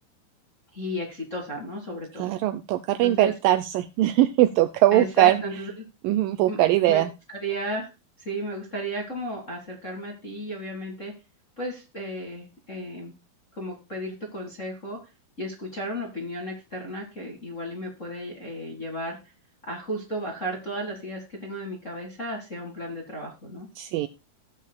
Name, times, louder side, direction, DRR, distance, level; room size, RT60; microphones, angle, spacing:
voice 1, 0.7-2.3 3.0-3.3 4.9-5.7 6.5-6.6 6.8-7.0 7.4-7.9 8.2-11.1 11.6-13.1 13.5-15.0 15.4-19.2 19.6-23.7, right 1 dB, 35° left, -1 dB, 1.2 m, -34 dB
voice 2, 2.2-5.4 6.0-7.1 23.8-24.1, right 14 dB, 80° right, 12 dB, 2.0 m, -21 dB
16.5 x 7.4 x 2.2 m, 0.29 s
omnidirectional pair, 4.4 m